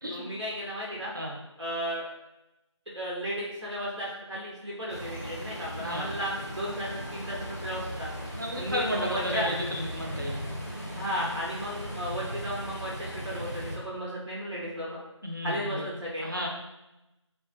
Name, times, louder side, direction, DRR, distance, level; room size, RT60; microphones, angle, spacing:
voice 1, 0.1-1.1 1.6-2.1 2.9-8.1 8.6-9.5 10.9-15.0 15.4-16.2, equal, 70° right, -6 dB, 0.7 m, -34 dB
sound 1, 4.9-13.8, equal, 35° left, 0.4 m, -38 dB
voice 2, 5.8-6.1 8.3-10.4 15.2-15.9 16.2-16.5, equal, 45° right, -2 dB, 0.4 m, -33 dB
2.2 x 2.1 x 2.6 m, 0.95 s
figure-of-eight pair, 180°, 16 cm